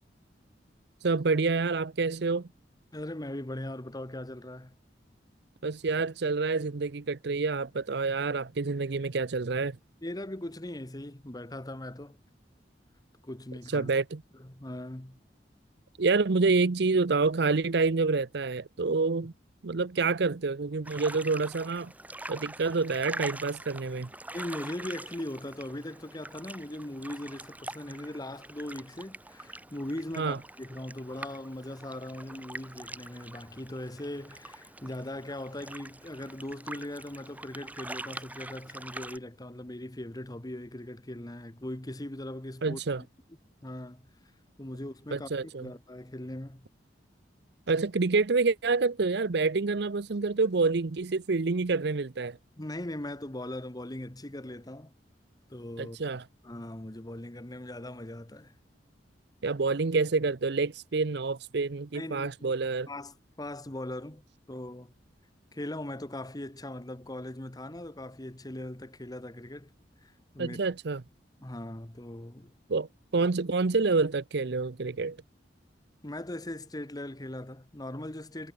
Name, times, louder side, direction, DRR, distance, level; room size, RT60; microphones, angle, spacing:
voice 1, 1.0-2.5 5.6-9.8 13.7-14.2 16.0-19.3 19.6-21.9 22.3-24.1 30.2-30.4 42.6-43.0 45.1-45.7 47.7-52.4 55.8-56.2 59.4-62.9 70.4-71.0 72.7-72.9 73.1-75.2, right 4 dB, 65° right, 0.7 m, -27 dB
voice 2, 2.9-4.8 10.0-12.2 13.2-13.9 14.3-15.2 24.3-42.8 43.6-44.1 44.6-46.7 52.6-54.9 55.5-56.0 56.4-58.5 61.9-62.6 62.9-64.9 65.5-69.7 70.0-70.6 71.4-72.5 76.0-78.5, left 1 dB, 20° left, 1.4 m, -40 dB
sound 1, 20.8-39.2, right 2 dB, 10° right, 2.5 m, -44 dB
head